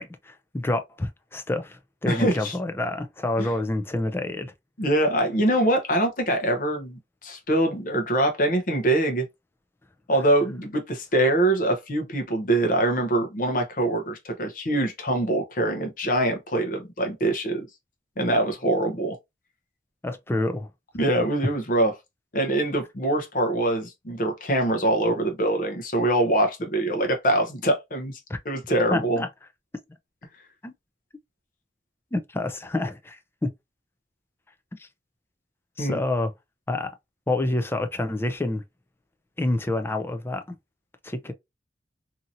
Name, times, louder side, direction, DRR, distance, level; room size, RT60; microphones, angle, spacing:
voice 1, 0.0-4.5 20.0-20.7 28.3-28.4 28.9-29.3 30.6-30.7 32.1-33.5 34.7-34.9 35.8-36.3 36.7-36.9 37.3-38.6 39.4-40.6 41.0-41.3, left 2 dB, 15° left, 0.4 m, -28 dB
voice 2, 2.1-2.5 3.4-3.5 4.8-9.3 10.1-17.7 18.2-19.2 21.0-21.9 22.3-28.2 28.4-29.2 35.8-36.0, right 1 dB, 50° left, 0.7 m, -24 dB
2.8 x 2.7 x 2.5 m
head